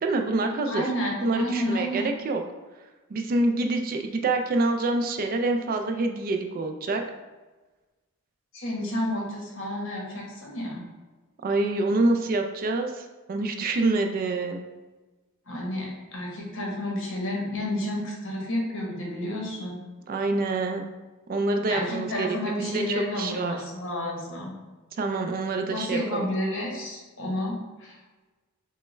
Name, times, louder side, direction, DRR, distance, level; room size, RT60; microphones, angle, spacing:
voice 1, 0.0-0.8 1.2-2.4 3.1-7.0 11.4-14.6 20.1-20.9 21.3-22.3 22.7-23.6 25.0-26.3, right 2 dB, 40° right, 5 dB, 0.3 m, -26 dB
voice 2, 0.7-2.1 8.5-10.8 15.5-19.8 21.7-24.5 25.7-28.0, left 1 dB, 60° left, -2 dB, 1.1 m, -30 dB
5.3 x 2.1 x 3.2 m, 1.2 s
head